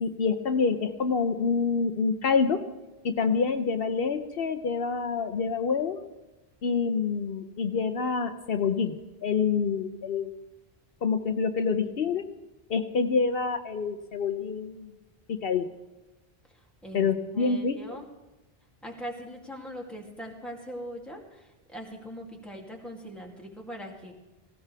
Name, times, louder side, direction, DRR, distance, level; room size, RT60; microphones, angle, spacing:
voice 1, 0.0-2.6 3.0-6.0 6.6-8.9 9.2-10.3 11.0-12.2 12.7-14.9 15.3-15.7 16.9-17.8, left 5 dB, 70° left, 8 dB, 1.0 m, -27 dB
voice 2, 16.4-18.1 18.8-24.1, equal, ahead, -1 dB, 2.6 m, -41 dB
19.0 x 17.0 x 3.5 m, 1.0 s
omnidirectional pair, 1.0 m